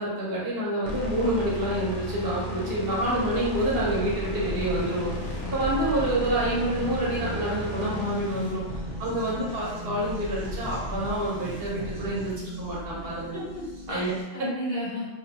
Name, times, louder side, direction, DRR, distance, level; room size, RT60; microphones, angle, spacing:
voice 1, 0.0-5.1 5.5-8.6 9.0-13.4 13.9-14.1, right 1 dB, 60° right, -6 dB, 0.9 m, -27 dB
sound 1, 0.8-10.0, left 2 dB, 85° left, 1.0 m, -35 dB
sound 2, 3.1-14.2, equal, 35° right, 0.7 m, -40 dB
sound 3, 4.4-12.3, right 1 dB, 10° left, 0.7 m, -39 dB
voice 2, 13.3-15.1, equal, 45° left, -8 dB, 1.1 m, -34 dB
3.0 x 2.2 x 2.7 m, 1.1 s
omnidirectional pair, 1.2 m